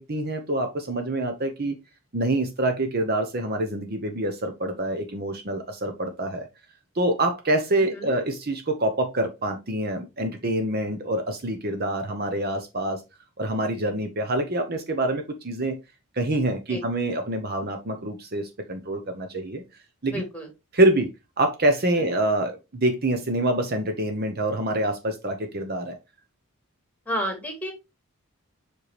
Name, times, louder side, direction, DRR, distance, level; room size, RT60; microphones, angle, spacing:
voice 1, 0.0-1.8 2.1-6.5 6.9-13.0 13.4-15.8 16.1-19.6 20.0-20.2 20.7-21.1 21.4-26.0, right 1 dB, 45° right, 0.9 m, -26 dB
voice 2, 20.1-20.5 27.1-27.7, equal, 5° left, 2.3 m, -30 dB
7.5 x 4.6 x 3.3 m
head